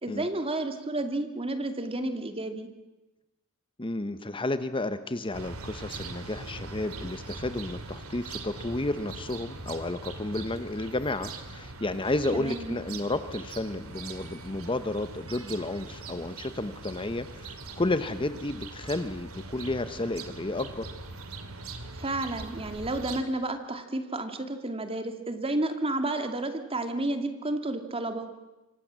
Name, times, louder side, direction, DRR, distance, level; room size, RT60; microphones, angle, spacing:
voice 1, 0.0-2.7 12.3-12.7 22.0-28.3, right 2 dB, 25° right, 7 dB, 2.3 m, -31 dB
voice 2, 3.8-20.9, left 2 dB, 25° left, 11 dB, 0.9 m, -32 dB
sound 1, 5.3-23.2, right 3 dB, 70° right, 2.6 m, -41 dB
26.5 x 24.5 x 7.5 m, 1.1 s
head